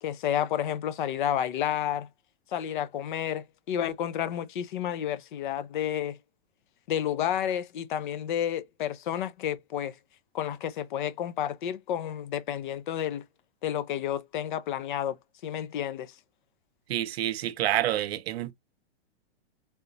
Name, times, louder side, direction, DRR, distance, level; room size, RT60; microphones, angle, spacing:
voice 1, 0.0-2.1 2.5-6.2 6.9-9.9 10.3-13.2 13.6-15.2 15.4-16.1, left 10 dB, 50° left, 0.5 m, -30 dB
voice 2, 16.9-18.5, right 13 dB, 70° right, 0.6 m, -28 dB
3.4 x 2.9 x 2.5 m
hypercardioid pair, 160°, 32 cm